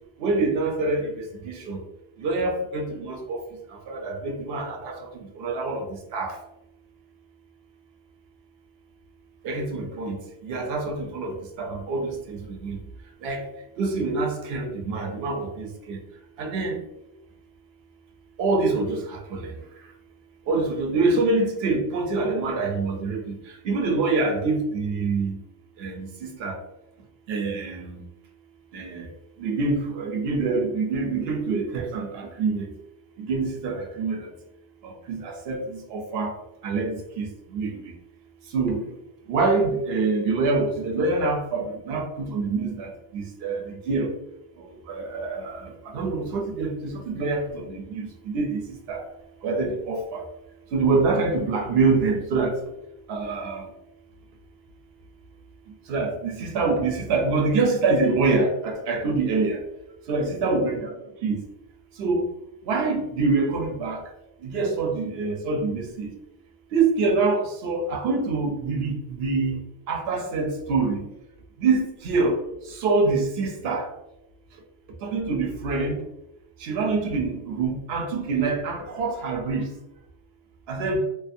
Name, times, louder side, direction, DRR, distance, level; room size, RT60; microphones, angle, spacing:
voice 1, 0.2-1.8 2.2-3.4 3.9-6.4 9.4-12.8 13.2-13.5 13.8-16.0 16.4-16.8 18.4-19.5 20.5-23.4 23.6-25.4 25.8-26.6 27.3-28.1 28.7-29.1 29.4-32.7 33.2-34.3 34.8-36.3 36.6-37.9 38.5-38.9 39.3-44.1 44.9-49.0 49.4-50.2 50.7-52.6 53.1-53.7 55.9-59.6 60.1-60.9 61.2-61.4 62.0-62.2 62.7-64.0 64.4-66.1 66.7-71.0 71.6-72.4 72.7-73.9 75.0-76.0 76.6-79.7 80.7-81.0, right 3 dB, 75° right, 2 dB, 0.8 m, -26 dB
2.5 x 2.4 x 2.5 m, 0.86 s
omnidirectional pair, 1.1 m